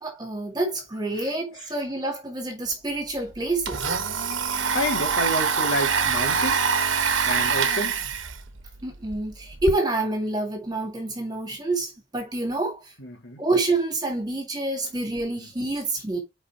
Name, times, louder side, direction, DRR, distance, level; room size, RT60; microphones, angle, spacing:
voice 1, 0.0-3.9 8.8-12.8 13.4-16.2, right 2 dB, 20° right, 2.1 m, -27 dB
Domestic sounds home sounds, 2.7-2.8 3.1-9.7, right 6 dB, 75° right, 1.1 m, -25 dB
voice 2, 4.7-6.7 7.2-8.0 13.0-13.5 14.8-14.9 15.3-15.5, equal, 80° left, 2.6 m, -29 dB
5.5 x 4.8 x 4.5 m
head